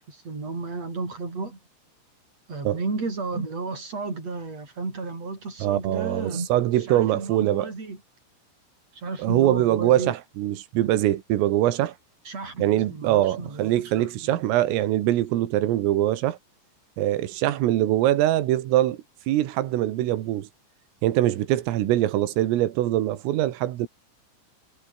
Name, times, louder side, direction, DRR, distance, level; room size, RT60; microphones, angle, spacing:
voice 1, 0.1-1.6 2.5-6.5 6.9-8.0 8.9-10.1 12.3-14.3, right 3 dB, 30° right, 7.8 m, -33 dB
voice 2, 5.6-7.7 9.2-12.0 12.6-16.4 17.0-19.0 19.3-20.5 21.0-23.9, right 14 dB, 90° right, 4.4 m, -23 dB
omnidirectional pair, 5.8 m